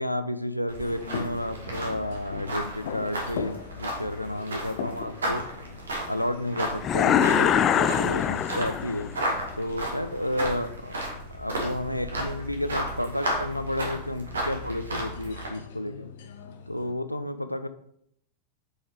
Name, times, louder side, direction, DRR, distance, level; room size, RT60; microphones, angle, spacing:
voice 1, 0.0-5.5 6.1-9.1 9.6-11.0 11.3-16.1 16.7-17.7, left 1 dB, 90° left, 10 dB, 0.5 m, -31 dB
sound 1, 0.7-15.5, right 1 dB, 70° right, 2.0 m, -34 dB
sound 2, 0.8-17.0, left 7 dB, 55° left, 0.8 m, -42 dB
sound 3, 6.8-9.2, left 9 dB, 30° left, 0.5 m, -23 dB
6.4 x 5.5 x 4.8 m, 0.72 s
figure-of-eight pair, 90°, 0 cm